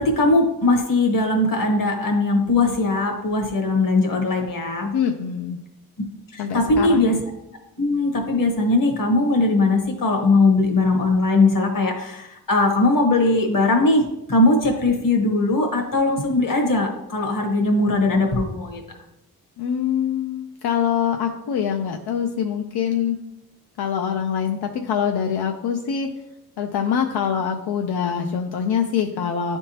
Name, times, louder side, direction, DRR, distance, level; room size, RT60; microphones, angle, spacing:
voice 1, 0.0-4.9 6.3-7.2 7.8-14.0 14.3-18.8, left 2 dB, 60° left, 2 dB, 1.3 m, -20 dB
voice 2, 4.9-5.6 6.4-7.1 19.6-23.2 23.8-26.1 26.6-29.6, left 8 dB, 85° left, 4 dB, 0.6 m, -24 dB
10.5 x 3.6 x 2.8 m, 0.87 s
wide cardioid pair, 155°, 37 cm